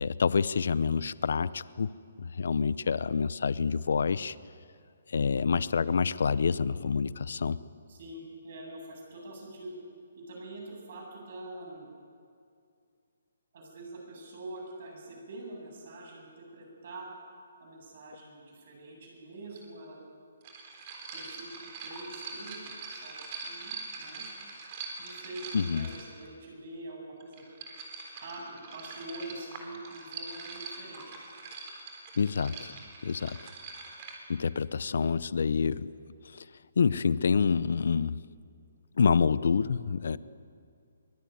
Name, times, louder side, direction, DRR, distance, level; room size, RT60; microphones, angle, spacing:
voice 1, 0.0-1.9 2.2-4.3 5.1-7.6 25.5-25.9 32.2-32.7 33.0-33.4 34.3-35.9 36.3-36.5 36.8-38.2 39.0-40.2, left 5 dB, 60° left, 17 dB, 0.7 m, -27 dB
voice 2, 7.9-9.7 10.2-11.9 13.5-17.1 17.6-20.0 21.1-24.3 25.0-27.5 28.1-31.2 40.1-40.2, right 1 dB, 40° right, 0 dB, 7.9 m, -45 dB
sound 1, 19.6-19.7 20.4-26.3 27.2-34.2, right 4 dB, 25° right, 3.9 m, -43 dB
23.5 x 20.5 x 9.5 m, 2.3 s
hypercardioid pair, 175°, 0 cm